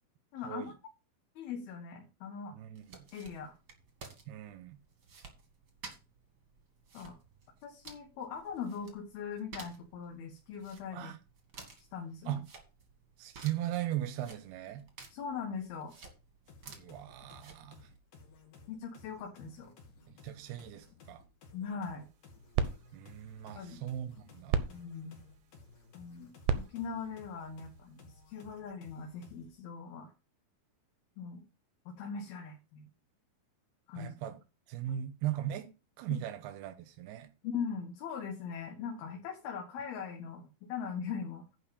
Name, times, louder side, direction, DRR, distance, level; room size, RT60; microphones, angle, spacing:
voice 1, 0.3-0.7 1.4-2.6 3.1-3.6 6.9-7.2 7.6-11.1 11.9-12.4 15.1-15.9 18.7-19.7 21.5-22.1 23.6-23.8 24.7-25.2 25.9-26.3 26.7-30.1 31.2-31.4 31.9-32.9 33.9-34.2 34.9-35.0 36.1-36.2 37.4-41.5, left 6 dB, 80° left, 3.5 m, -40 dB
voice 2, 2.5-3.1 4.3-4.8 10.9-11.2 12.3-12.4 13.2-14.8 16.7-17.9 20.1-21.2 22.9-24.6 34.0-34.4 34.7-35.7 36.0-37.3, right 12 dB, 90° right, 3.0 m, -38 dB
sound 1, 2.7-18.0, right 4 dB, 40° right, 1.6 m, -54 dB
sound 2, 16.5-29.6, left 3 dB, 60° left, 3.8 m, -57 dB
sound 3, 22.0-28.4, right 7 dB, 70° right, 2.1 m, -38 dB
10.5 x 4.5 x 7.0 m
omnidirectional pair, 4.4 m